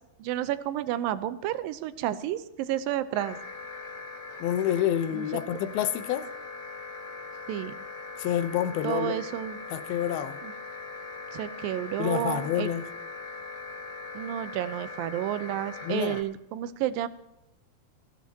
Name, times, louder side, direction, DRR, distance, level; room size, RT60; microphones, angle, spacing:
voice 1, 0.2-3.4 5.1-5.3 7.5-7.7 8.8-9.6 10.4-10.5 11.3-12.7 14.1-17.1, right 12 dB, 75° right, 2.4 m, -31 dB
sound 1, 3.1-16.2, left 3 dB, 55° left, 3.0 m, -41 dB
voice 2, 4.4-6.3 8.2-9.2 9.7-10.4 12.0-12.9 15.8-16.2, left 11 dB, 80° left, 2.8 m, -28 dB
22.0 x 15.5 x 2.9 m
omnidirectional pair, 4.4 m